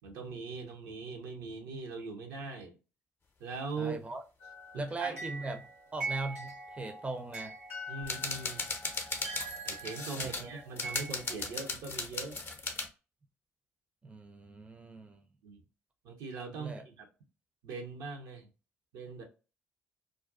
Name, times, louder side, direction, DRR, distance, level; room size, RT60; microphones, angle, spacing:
voice 1, 0.0-2.7 3.4-4.0 5.0-5.2 7.9-8.7 9.6-12.4 15.4-15.6 16.0-17.1 17.6-18.5 18.9-19.2, right 4 dB, 65° right, 0.6 m, -41 dB
voice 2, 3.8-4.2 4.7-5.7 5.9-7.5 10.2-10.5 14.0-15.3 16.5-16.8, right 3 dB, 20° right, 0.5 m, -39 dB
sound 1, 4.4-11.7, right 2 dB, 90° right, 1.1 m, -43 dB
sound 2, 8.0-10.4 10.8-12.9, left 3 dB, 30° left, 0.6 m, -37 dB
2.4 x 2.2 x 2.4 m
figure-of-eight pair, 45°, 7 cm